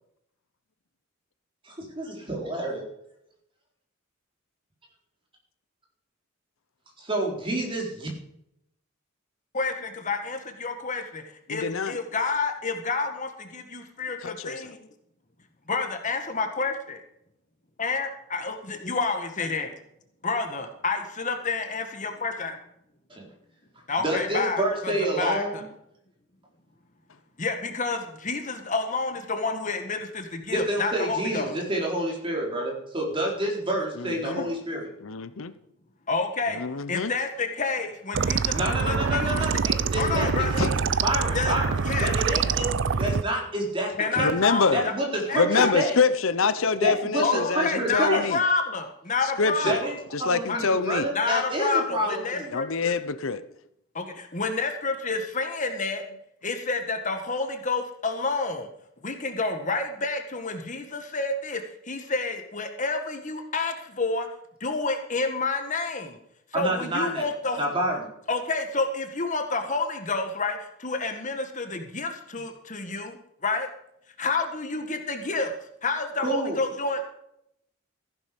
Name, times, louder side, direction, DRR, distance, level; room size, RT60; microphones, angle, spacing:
voice 1, 1.6-2.9 7.0-8.1 23.1-23.3 24.0-25.6 30.5-34.9 38.5-44.3 44.7-46.0 46.8-48.3 49.6-52.5 66.5-67.3 67.6-68.1 76.2-76.6, right 1 dB, 25° right, -1 dB, 4.2 m, -28 dB
voice 2, 9.5-11.2 11.5-14.9 15.7-17.0 17.8-19.8 20.2-22.6 23.9-25.6 27.4-31.5 34.2-34.5 36.1-36.6 36.9-39.4 39.9-40.6 41.3-41.5 41.9-42.2 44.0-44.9 45.3-45.7 47.2-50.0 50.5-50.6 51.1-52.9 53.9-56.0 56.4-58.7 59.0-64.3 64.6-66.2 66.5-67.7 68.3-73.7 74.2-75.5 75.8-77.0, left 3 dB, 35° left, 6 dB, 1.7 m, -29 dB
voice 3, 11.5-11.9 14.2-14.6 34.0-34.4 35.0-35.5 36.5-37.1 40.6-40.7 44.2-44.8 45.4-48.4 49.4-49.8 50.1-51.1 52.5-53.4, left 5 dB, 70° left, 13 dB, 0.8 m, -25 dB
sound 1, 38.1-43.2, right 5 dB, 60° right, 0.5 m, -25 dB
15.0 x 11.0 x 5.3 m, 0.75 s
head